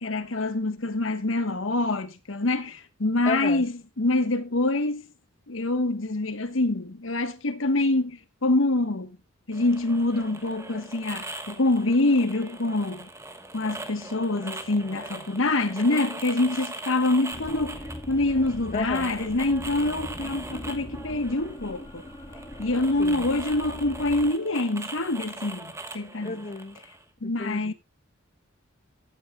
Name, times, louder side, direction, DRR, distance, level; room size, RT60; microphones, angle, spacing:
voice 1, 0.0-5.0 5.5-9.2 9.5-13.1 13.5-17.8 18.1-22.0 22.6-25.7 25.9-26.4 27.2-27.7, left 2 dB, 85° left, 1.3 m, -25 dB
voice 2, 3.2-3.7 18.7-19.1 23.0-23.3 26.2-26.8 27.2-27.7, left 3 dB, 40° left, 1.0 m, -32 dB
sound 1, 9.5-27.0, right 2 dB, 15° right, 1.3 m, -41 dB
sound 2, 17.3-24.3, equal, 25° left, 1.5 m, -40 dB
16.0 x 8.6 x 2.3 m
head